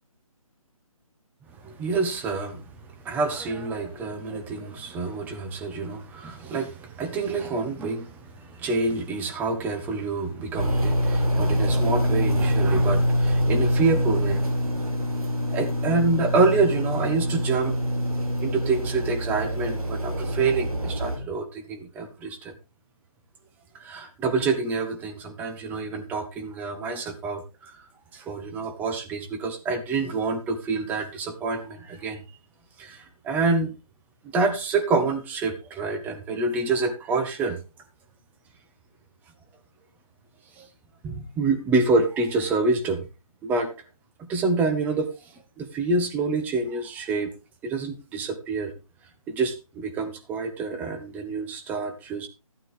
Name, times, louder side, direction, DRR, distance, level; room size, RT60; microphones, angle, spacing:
voice 1, 1.6-2.6 3.0-14.6 15.5-17.8 18.4-22.5 23.8-27.8 28.1-32.2 32.8-33.7 34.2-37.6 40.6-40.7 41.0-43.1 43.4-43.7 44.2-47.3 47.6-48.7 49.3-52.3, right 3 dB, 10° right, 6 dB, 1.2 m, -27 dB
sound 1, 10.6-21.2, equal, 85° right, 5.8 m, -25 dB
14.0 x 9.0 x 3.4 m, 0.28 s
figure-of-eight pair, 155°, 18 cm